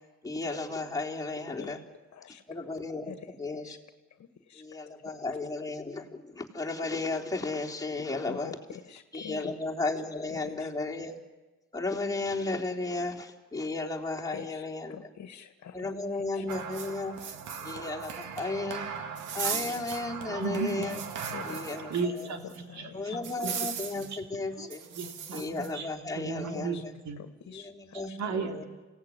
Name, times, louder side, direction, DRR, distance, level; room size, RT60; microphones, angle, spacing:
voice 1, 0.2-1.8 2.5-3.8 4.5-8.5 9.1-11.2 11.7-15.0 15.7-17.2 17.6-18.9 19.3-21.0 21.4-22.3 22.9-24.8 25.3-26.8 27.5-28.6, left 3 dB, 10° left, -1 dB, 3.6 m, -34 dB
voice 2, 3.0-3.8 4.2-4.6 5.0-5.1 8.3-9.5 10.3-10.7 14.3-14.6 14.9-15.9 16.3-16.5 21.3-22.0 22.7-23.2 26.5-26.8 27.2-28.2, left 8 dB, 60° left, 10 dB, 1.8 m, -45 dB
sound 1, 16.5-22.2 22.5-22.6 23.2-24.1 24.7-25.7, right 7 dB, 85° right, 2.2 m, -38 dB
voice 3, 19.4-19.8 20.3-21.3 21.9-23.5 24.0-24.2 24.6-24.7 24.9-25.9 26.1-27.2 27.9-28.6, right 4 dB, 65° right, 6 dB, 3.1 m, -35 dB
28.5 x 17.5 x 9.6 m, 1.2 s
cardioid pair, 90°, 30 cm